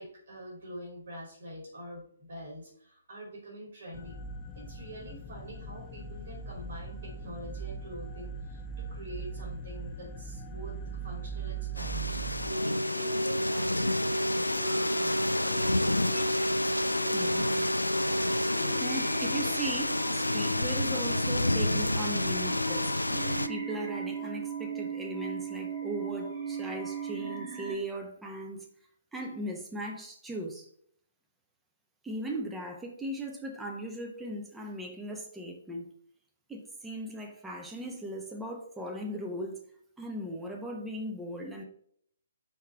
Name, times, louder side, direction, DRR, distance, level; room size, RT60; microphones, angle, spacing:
voice 1, 0.0-4.2 4.5-10.8 11.0-15.6, equal, 60° right, -3 dB, 3.0 m, -45 dB
sound 1, 3.9-12.5, right 4 dB, 20° left, 0.6 m, -40 dB
sound 2, 11.8-23.5, left 1 dB, 85° left, 0.4 m, -30 dB
sound 3, 12.5-27.8, right 1 dB, 35° right, 1.7 m, -35 dB
voice 2, 17.1-17.7 18.8-22.9 23.4-28.7 29.1-30.7 32.0-35.9 36.5-39.6 40.0-41.6, right 1 dB, 5° right, 0 dB, 1.1 m, -38 dB
5.5 x 4.5 x 4.6 m, 0.63 s
figure-of-eight pair, 130°, 0 cm